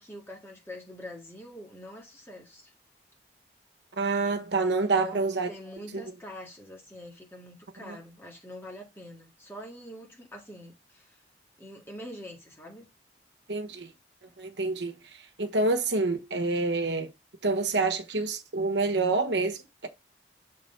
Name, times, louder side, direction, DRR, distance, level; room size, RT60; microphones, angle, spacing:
voice 1, 0.0-2.7 5.0-11.2 11.6-12.9, left 1 dB, 15° left, 1.8 m, -44 dB
voice 2, 3.9-5.5 7.8-8.0 13.5-13.9 14.4-14.9 15.4-17.1 17.4-19.9, right 3 dB, 85° right, 1.0 m, -27 dB
6.6 x 3.9 x 4.4 m
head